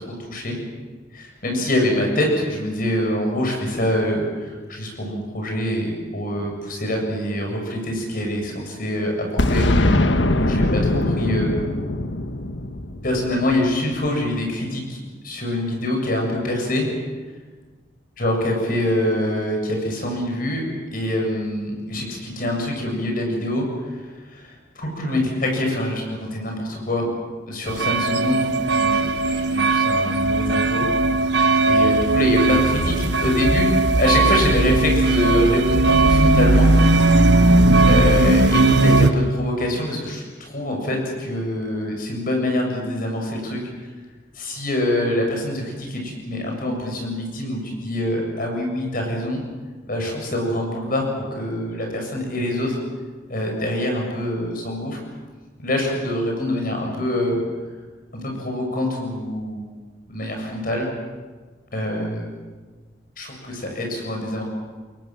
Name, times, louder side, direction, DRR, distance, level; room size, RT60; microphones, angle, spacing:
voice 1, 0.1-0.6 1.1-10.1 10.3-11.5 13.0-16.9 18.2-20.6 20.9-23.7 23.9-24.0 24.3-27.1 27.5-30.9 31.7-33.7 34.0-36.7 37.9-43.6 44.3-49.4 49.9-52.8 53.3-55.0 55.6-57.4 58.2-59.7 60.1-60.9 61.7-62.3 63.2-64.4, left 1 dB, 50° left, 1 dB, 7.5 m, -25 dB
Boom, 9.4-14.1, left 1 dB, 70° left, 1.5 m, -21 dB
sound 1, 27.7-39.1, right 2 dB, 65° right, 1.3 m, -17 dB
29.0 x 22.5 x 7.7 m, 1.4 s
head